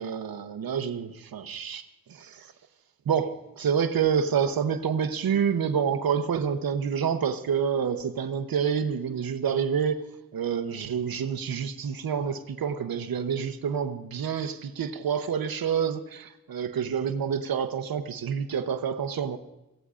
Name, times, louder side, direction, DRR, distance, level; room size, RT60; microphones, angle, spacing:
voice 1, 0.0-1.8 2.1-2.5 3.1-10.0 10.3-19.4, right 7 dB, 70° right, 0.8 m, -28 dB
24.0 x 16.0 x 2.5 m
wide cardioid pair, 170°, 37 cm